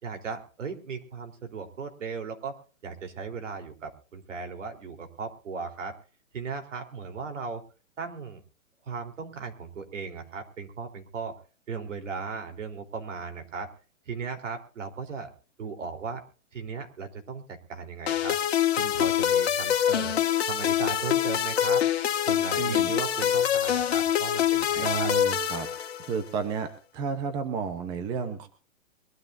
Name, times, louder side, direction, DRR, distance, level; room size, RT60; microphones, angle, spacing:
voice 1, 0.0-2.6 2.8-5.9 6.3-7.6 8.0-8.4 8.9-11.4 11.7-13.7 14.1-15.3 15.6-16.2 16.5-18.4 18.8-20.1 20.5-21.8 22.3-25.1, right 5 dB, 70° right, 6 dB, 4.0 m, -37 dB
sound 1, 18.1-26.3, left 10 dB, 55° left, 1.9 m, -25 dB
voice 2, 22.6-22.9 24.7-25.7 26.0-26.7 26.9-28.5, right 6 dB, 10° right, 8 dB, 0.9 m, -31 dB
24.0 x 12.5 x 2.7 m, 0.38 s
hypercardioid pair, 165°, 39 cm